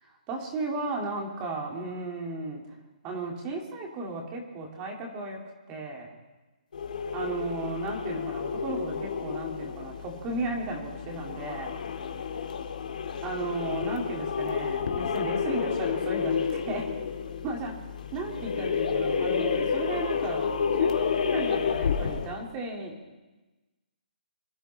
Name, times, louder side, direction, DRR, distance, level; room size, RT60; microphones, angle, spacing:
voice 1, 0.3-2.6 3.0-5.4 5.7-6.2 7.1-11.8 13.2-16.8 17.4-17.7 18.1-20.5 20.8-23.2, right 3 dB, 20° right, 0 dB, 2.3 m, -35 dB
sound 1, 6.7-22.4, left 6 dB, 65° left, 2.1 m, -30 dB
26.0 x 13.5 x 3.3 m, 1.2 s
hypercardioid pair, 165°, 5 cm